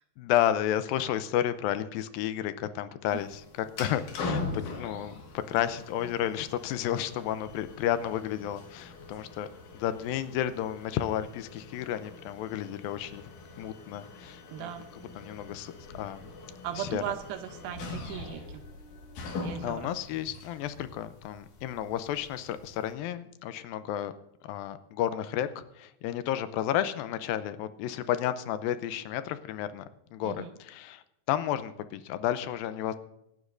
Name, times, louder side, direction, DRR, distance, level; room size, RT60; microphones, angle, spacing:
voice 1, 0.2-3.4 3.8-9.5 9.7-13.3 13.6-14.7 15.2-16.3 16.8-17.0 19.6-24.1 24.4-31.0 31.3-33.0, left 11 dB, 90° left, 12 dB, 2.4 m, -32 dB
sound 1, 3.1-22.9, left 3 dB, 65° left, 3.1 m, -42 dB
voice 2, 14.5-14.9 16.6-18.6 19.4-19.9 30.2-30.5, right 11 dB, 85° right, 8 dB, 2.7 m, -38 dB
26.0 x 9.7 x 2.6 m, 0.81 s
omnidirectional pair, 4.1 m